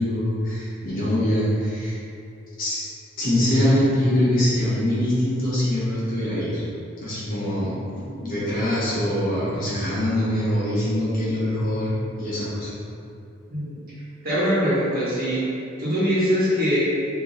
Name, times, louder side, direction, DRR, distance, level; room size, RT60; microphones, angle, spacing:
voice 1, 0.0-1.9 2.6-2.8 3.2-6.6 7.0-12.7, left 1 dB, 45° left, -9 dB, 1.2 m, -23 dB
voice 2, 14.2-15.4 15.8-16.8, equal, 45° right, -10 dB, 1.3 m, -22 dB
3.5 x 2.9 x 3.9 m, 2.6 s
head